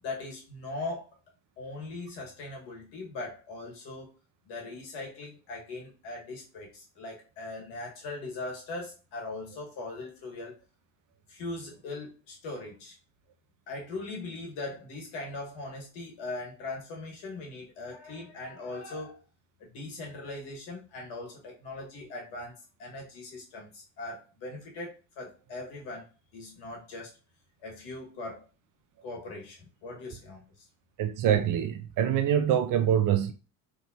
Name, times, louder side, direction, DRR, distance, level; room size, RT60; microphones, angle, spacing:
voice 1, 0.0-1.1 1.6-4.1 4.5-10.6 11.3-12.9 13.7-19.2 19.6-22.5 22.8-26.1 26.3-27.1 27.6-28.4 29.0-30.4, left 2 dB, 65° left, 1.9 m, -40 dB
voice 2, 31.0-33.3, right 9 dB, 45° right, 0.6 m, -25 dB
4.0 x 3.4 x 2.9 m
hypercardioid pair, 70°, 45 cm